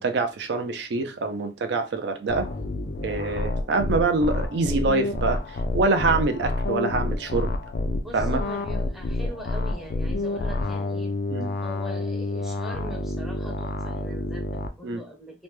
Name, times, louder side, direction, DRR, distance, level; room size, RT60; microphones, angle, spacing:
voice 1, 0.0-2.5 3.0-5.4 5.7-7.5 8.1-8.4 11.3-11.5 14.8-15.0, right 3 dB, 60° right, 0.4 m, -25 dB
sound 1, 2.3-14.7, left 2 dB, 50° left, 0.3 m, -29 dB
voice 2, 8.0-11.2 11.6-15.4, left 1 dB, ahead, 0.6 m, -41 dB
3.0 x 2.1 x 3.1 m
head